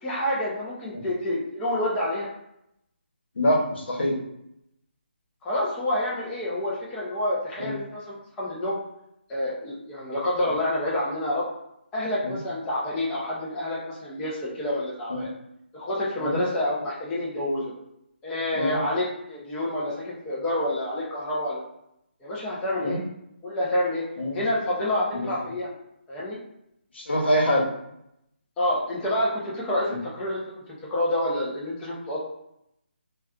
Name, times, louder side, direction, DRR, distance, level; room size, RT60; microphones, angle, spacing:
voice 1, 0.0-2.3 5.4-8.8 9.3-11.4 11.9-15.3 15.7-17.7 18.2-21.6 22.2-23.0 23.4-24.0 24.3-25.7 26.1-26.4 28.6-30.4 30.9-32.3, left 1 dB, 10° left, -7 dB, 0.5 m, -28 dB
voice 2, 3.4-4.2 7.6-7.7 12.2-12.4 15.1-15.3 16.2-16.4 18.5-18.8 22.8-23.0 24.2-24.4 25.1-25.3 26.9-27.6 29.9-30.0, equal, 70° left, -2 dB, 1.1 m, -25 dB
4.1 x 2.3 x 2.4 m, 0.79 s
figure-of-eight pair, 160°, 6 cm